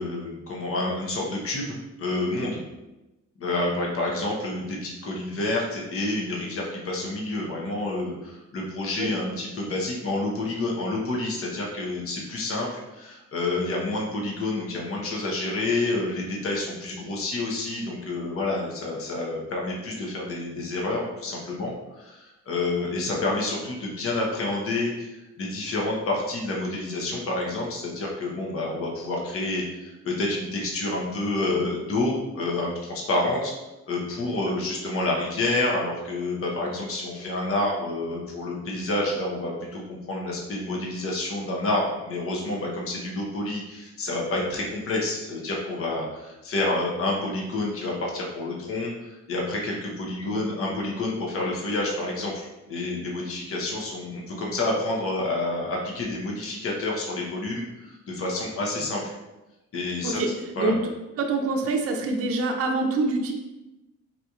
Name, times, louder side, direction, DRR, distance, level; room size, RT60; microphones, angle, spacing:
voice 1, 0.0-2.6 3.4-33.5 33.9-59.1 59.7-60.2 60.5-60.7, left 2 dB, 45° left, -2 dB, 0.9 m, -29 dB
voice 2, 60.6-60.9 61.2-63.3, right 3 dB, 50° right, 2 dB, 0.5 m, -25 dB
4.1 x 2.8 x 2.4 m, 1.0 s
cardioid pair, 90°, 30 cm